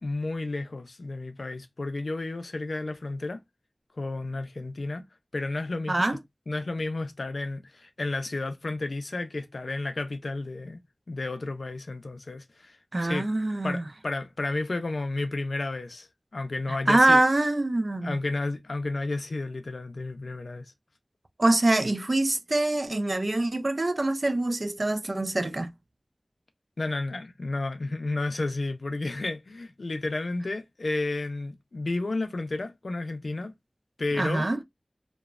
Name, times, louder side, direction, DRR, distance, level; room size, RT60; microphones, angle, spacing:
voice 1, 0.0-3.4 3.9-5.0 5.3-6.2 6.5-10.8 11.1-13.3 13.6-17.2 18.0-20.7 26.8-33.5 34.0-34.5, left 2 dB, 85° left, 0.4 m, -32 dB
voice 2, 5.9-6.2 12.9-13.8 16.7-18.2 21.4-25.7 34.2-34.6, right 2 dB, 60° right, 0.3 m, -24 dB
3.0 x 2.1 x 2.4 m
wide cardioid pair, 40°, 0 cm